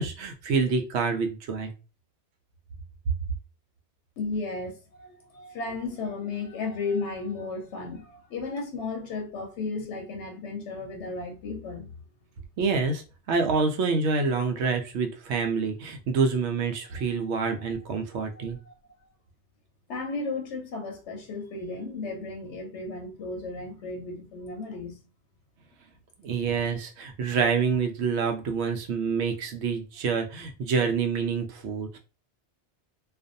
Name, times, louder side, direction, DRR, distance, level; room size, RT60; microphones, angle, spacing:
voice 1, 0.0-1.7 12.6-18.6 26.2-32.0, right 5 dB, 80° right, 0.9 m, -27 dB
voice 2, 4.2-12.0 17.0-17.6 18.2-18.7 19.9-25.0, left 3 dB, 90° left, 1.0 m, -34 dB
2.5 x 2.3 x 2.5 m
omnidirectional pair, 1.1 m